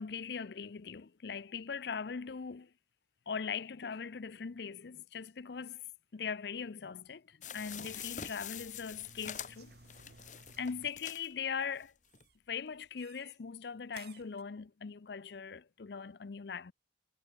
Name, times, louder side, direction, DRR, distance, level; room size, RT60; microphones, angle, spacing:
voice 1, 0.0-2.7 3.3-5.8 6.1-9.7 10.6-11.9 12.5-16.7, left 6 dB, 60° left, 0.5 m, -40 dB
sound 1, 7.4-11.3 11.8-11.9 12.1-12.2, left 9 dB, 40° left, 1.4 m, -45 dB
sound 2, 7.6-11.1 11.3-11.8 12.1-12.4 13.0-13.4 13.9-14.4, right 4 dB, 55° right, 2.0 m, -58 dB
head